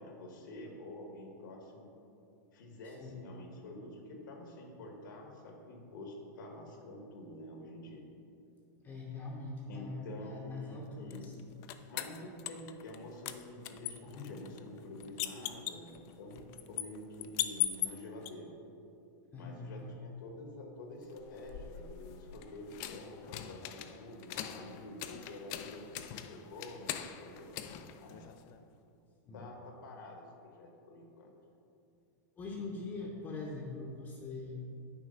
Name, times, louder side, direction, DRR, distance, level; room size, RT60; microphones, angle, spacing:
voice 1, 0.0-1.9 2.5-8.0 9.7-11.3 11.9-18.5 19.3-28.2 29.3-31.3, left 1 dB, 80° left, 1 dB, 1.4 m, -48 dB
voice 2, 2.8-3.1 8.8-11.4 19.3-19.9 29.3-29.5 32.4-34.6, left 3 dB, 20° left, -2 dB, 0.7 m, -42 dB
sound 1, 11.1-13.0 13.3-18.3 21.1-28.6, left 12 dB, 35° left, 0.3 m, -41 dB
9.3 x 3.1 x 5.5 m, 2.6 s
supercardioid pair, 150°, 10 cm